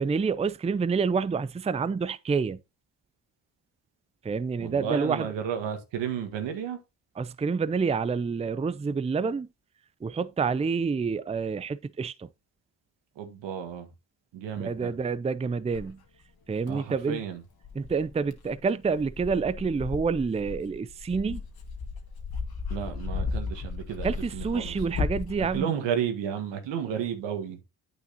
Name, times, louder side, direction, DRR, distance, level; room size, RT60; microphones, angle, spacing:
voice 1, 0.0-2.6 4.2-5.3 7.2-9.5 10.0-12.3 14.6-16.0 16.5-17.2 17.7-21.4 24.0-25.7, right 5 dB, 15° right, 0.5 m, -28 dB
voice 2, 4.6-6.8 13.2-13.9 14.3-14.9 16.6-17.4 22.7-24.1 24.3-24.7 25.5-27.6, right 8 dB, 85° right, 1.6 m, -32 dB
Dog, 15.7-15.9 16.7-16.8 17.6-25.6, left 4 dB, 60° left, 1.9 m, -35 dB
8.8 x 6.4 x 2.9 m
supercardioid pair, 55°, 42 cm